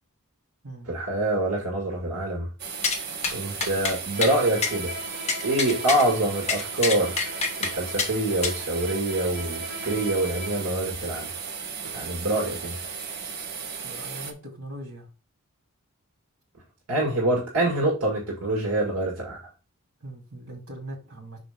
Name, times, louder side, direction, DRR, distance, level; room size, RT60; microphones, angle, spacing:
voice 1, 0.9-2.5 3.3-4.9 5.4-11.3 11.9-12.7 16.9-19.4, right 1 dB, 90° right, 1.9 m, -26 dB
sound 1, 2.6-14.3, right 6 dB, 50° right, 1.1 m, -36 dB
sound 2, 2.8-3.0 3.2-3.3 3.6-4.3 4.6-4.7 5.3-6.0 6.5-7.7 8.0-8.1 8.4-8.6, left 4 dB, 30° left, 1.3 m, -26 dB
Bowed string instrument, 4.1-10.8, equal, 30° right, 1.9 m, -39 dB
voice 2, 13.8-15.1 20.0-21.4, right 1 dB, 70° right, 3.3 m, -40 dB
6.2 x 5.1 x 3.7 m
head